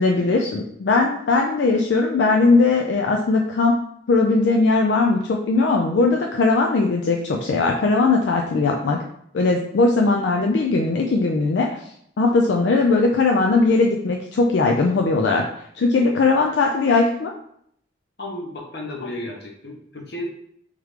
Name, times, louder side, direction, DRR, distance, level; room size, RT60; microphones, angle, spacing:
voice 1, 0.0-3.7 4.1-9.0 9.3-11.7 12.2-15.4 15.8-17.3, left 3 dB, 90° left, 1 dB, 0.4 m, -19 dB
voice 2, 18.2-20.2, left 1 dB, 65° left, 1 dB, 0.9 m, -33 dB
3.6 x 3.2 x 3.2 m, 0.69 s
head